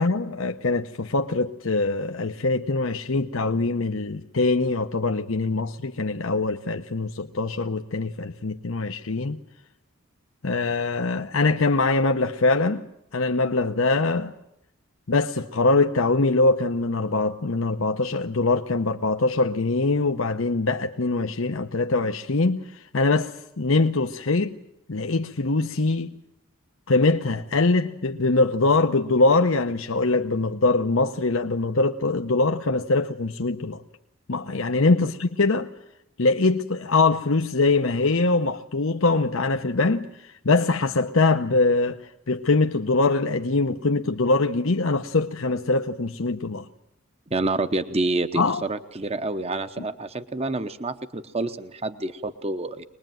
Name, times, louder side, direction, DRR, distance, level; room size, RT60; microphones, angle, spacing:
voice 1, 0.0-9.4 10.4-12.9 13.1-14.3 15.1-24.6 24.9-26.1 26.9-33.8 34.3-35.7 36.2-46.7 48.3-48.6, left 3 dB, 65° left, 0.9 m, -23 dB
voice 2, 47.3-52.8, right 2 dB, 30° right, 0.9 m, -28 dB
24.0 x 20.5 x 9.2 m
head